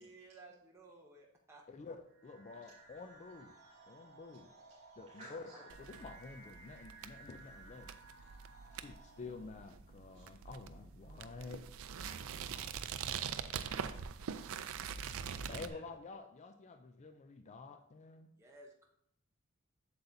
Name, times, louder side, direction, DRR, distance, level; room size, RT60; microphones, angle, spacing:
voice 1, 0.0-1.6 18.4-18.9, right 2 dB, 10° right, -1 dB, 0.7 m, -57 dB
voice 2, 1.7-3.5 3.9-4.5 5.0-5.4 5.8-7.9 8.8-11.6 15.5-18.3, left 4 dB, 30° left, 8 dB, 0.3 m, -49 dB
sound 1, 2.1-9.7, right 3 dB, 45° right, 2.0 m, -58 dB
voice 3, 5.1-5.6 8.7-8.8 10.2-10.3 11.9-13.0 14.8-14.9, right 1 dB, 30° right, -7 dB, 2.4 m, -57 dB
sound 2, 5.7-15.7, right 7 dB, 65° right, 0.4 m, -44 dB
7.9 x 7.0 x 2.7 m, 0.72 s
head